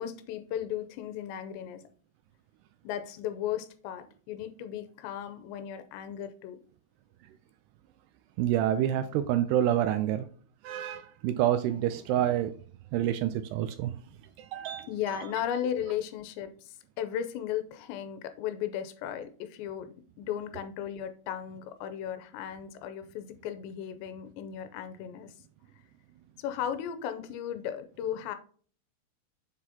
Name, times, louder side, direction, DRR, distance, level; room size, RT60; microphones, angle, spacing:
voice 1, 0.0-1.8 2.8-6.6 14.9-25.3 26.4-28.4, left 10 dB, 85° left, 2.9 m, -36 dB
voice 2, 8.4-10.3 10.6-12.5 12.9-13.9 14.4-15.3, right 11 dB, 85° right, 2.4 m, -28 dB
7.6 x 6.1 x 2.8 m
omnidirectional pair, 5.2 m